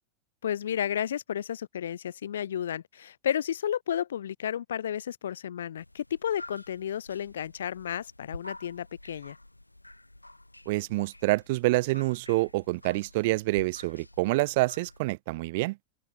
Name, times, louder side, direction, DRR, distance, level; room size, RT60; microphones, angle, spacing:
voice 1, 0.4-9.4, left 9 dB, 65° left, 1.1 m, -32 dB
sound 1, 5.8-15.0, left 1 dB, 85° left, 3.9 m, -49 dB
voice 2, 10.7-15.8, right 21 dB, 50° right, 0.4 m, -27 dB
open air
figure-of-eight pair, 90°, 0 cm